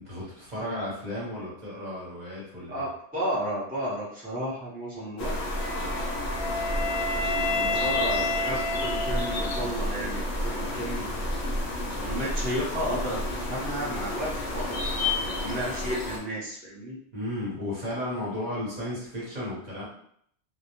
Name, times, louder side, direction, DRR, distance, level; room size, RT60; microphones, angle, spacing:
voice 1, 0.0-2.9 17.1-19.8, left 1 dB, 40° right, -7 dB, 0.9 m, -34 dB
voice 2, 2.7-6.6 7.1-11.2 11.9-17.0, equal, 10° right, -8 dB, 0.6 m, -33 dB
sound 1, 5.2-16.2, left 1 dB, 50° left, 0.5 m, -31 dB
Wind instrument woodwind instrument, 5.6-9.7, left 2 dB, 85° left, 1.0 m, -30 dB
2.2 x 2.1 x 2.9 m, 0.66 s
omnidirectional pair, 1.2 m